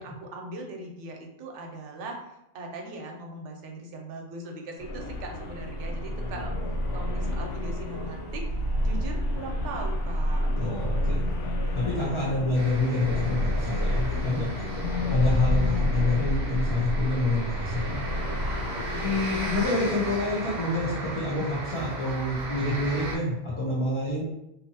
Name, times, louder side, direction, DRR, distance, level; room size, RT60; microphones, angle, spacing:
voice 1, 0.0-2.2 2.5-6.5 6.9-8.5 8.8-11.4 15.8-15.9 18.6-19.7 20.0-20.2, right 2 dB, 85° right, 2 dB, 0.9 m, -40 dB
sound 1, 4.8-19.7, left 1 dB, 85° left, 0.9 m, -29 dB
voice 2, 10.6-11.2 11.8-14.5 15.1-18.2 19.0-24.2, left 2 dB, 40° left, -6 dB, 0.5 m, -27 dB
sound 2, 12.5-23.2, right 2 dB, 50° right, 0.6 m, -36 dB
2.6 x 2.5 x 2.7 m, 0.86 s
omnidirectional pair, 1.2 m